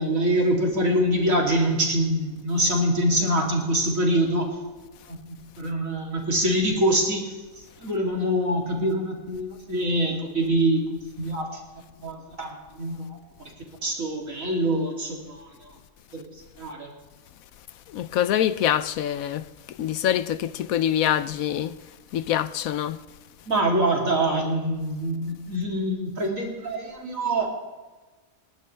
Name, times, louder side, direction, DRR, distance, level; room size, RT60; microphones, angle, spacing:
voice 1, 0.0-4.5 5.1-5.2 5.6-7.3 7.8-10.8 11.2-11.6 12.0-13.2 13.8-15.7 16.1-16.2 16.6-16.9 23.5-27.5, right 1 dB, 70° right, 3.6 m, -24 dB
voice 2, 17.9-19.4 19.8-21.7 22.1-23.0, left 11 dB, 85° left, 1.1 m, -25 dB
29.5 x 12.0 x 3.4 m
omnidirectional pair, 1.4 m